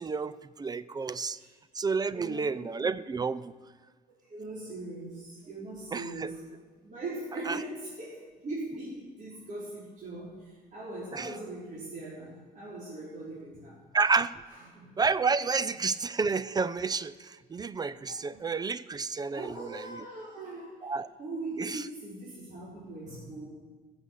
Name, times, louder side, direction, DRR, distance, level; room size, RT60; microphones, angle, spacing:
voice 1, 0.0-1.4 1.7-3.5 5.9-6.3 7.5-7.6 11.1-11.3 13.9-14.3 15.0-20.0 20.8-21.1 21.6-21.8, right 4 dB, 25° right, 16 dB, 0.4 m, -30 dB
voice 2, 1.0-1.5 2.1-2.7 4.3-6.4 6.8-13.8 14.5-14.9 18.0-18.5 19.3-20.9 21.2-23.4, right 2 dB, 45° right, -7 dB, 3.9 m, -40 dB
15.0 x 7.1 x 7.3 m, 1.5 s
cardioid pair, 110°, 17 cm